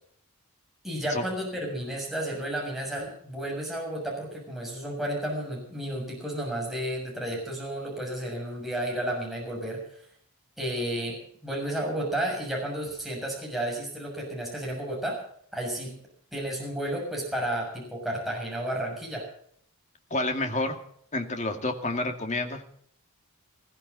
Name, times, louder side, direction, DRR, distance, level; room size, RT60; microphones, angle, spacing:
voice 1, 0.8-9.8 10.6-11.2 11.4-15.2 15.5-15.9 16.3-19.3, right 1 dB, ahead, -3 dB, 6.8 m, -32 dB
voice 2, 20.1-20.8 21.1-22.6, left 2 dB, 35° left, 5 dB, 2.3 m, -29 dB
21.0 x 15.0 x 4.1 m, 0.63 s
head